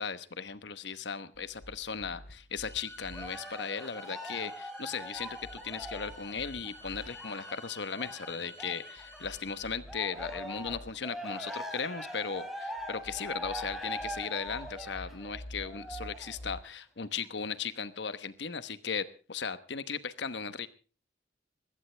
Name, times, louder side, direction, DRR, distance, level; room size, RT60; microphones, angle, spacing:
voice 1, 0.0-20.7, left 6 dB, 65° left, 13 dB, 1.1 m, -37 dB
sound 1, 1.3-3.3 5.2-7.1 9.0-10.9 12.8-16.6, equal, 50° left, 3.1 m, -49 dB
sound 2, 2.6-9.7, left 2 dB, 15° left, 6.2 m, -50 dB
Cheering, 3.1-9.4 9.8-16.4 17.0-17.1, equal, ahead, 3.1 m, -42 dB
21.0 x 16.5 x 3.3 m, 0.36 s
head